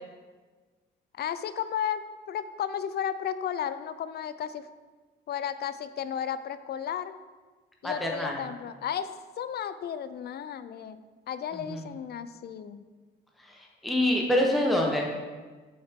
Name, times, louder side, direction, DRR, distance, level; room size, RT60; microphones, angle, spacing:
voice 1, 1.1-2.0 2.3-4.7 5.3-7.2 7.8-9.1 9.4-11.0 11.3-12.8, left 9 dB, 55° left, 13 dB, 0.4 m, -33 dB
voice 2, 7.8-8.4 11.5-11.9 13.4-15.1, left 1 dB, ahead, -1 dB, 1.0 m, -26 dB
7.2 x 6.0 x 3.6 m, 1.4 s
cardioid pair, 90°, 20 cm